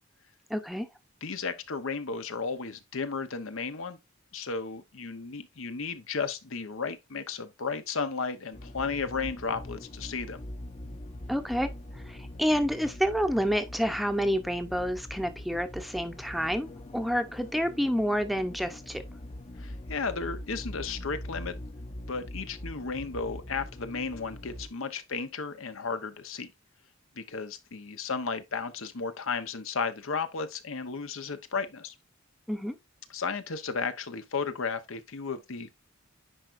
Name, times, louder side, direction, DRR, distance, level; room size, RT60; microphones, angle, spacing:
voice 1, 0.5-0.9 11.3-11.7 12.1-19.0 32.5-32.8, equal, ahead, 0.7 m, -29 dB
voice 2, 1.2-4.0 4.3-10.4 19.6-21.5 22.1-26.5 27.2-32.0 33.1-35.7, left 5 dB, 70° left, 0.9 m, -34 dB
sound 1, 8.5-24.7, left 1 dB, 35° left, 0.8 m, -43 dB
9.9 x 4.5 x 2.5 m
head